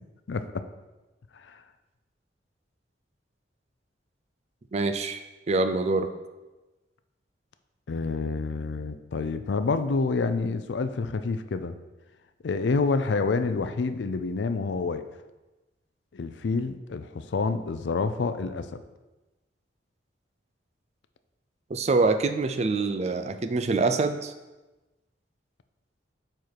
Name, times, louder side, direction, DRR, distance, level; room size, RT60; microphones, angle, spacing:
voice 1, 0.3-0.6 1.3-1.6 7.9-11.7 12.4-15.0 16.1-18.8, left 4 dB, 75° left, 10 dB, 0.4 m, -28 dB
voice 2, 4.7-6.1 21.7-24.3, right 3 dB, 35° right, 9 dB, 0.4 m, -25 dB
7.1 x 4.4 x 4.6 m, 1.1 s
head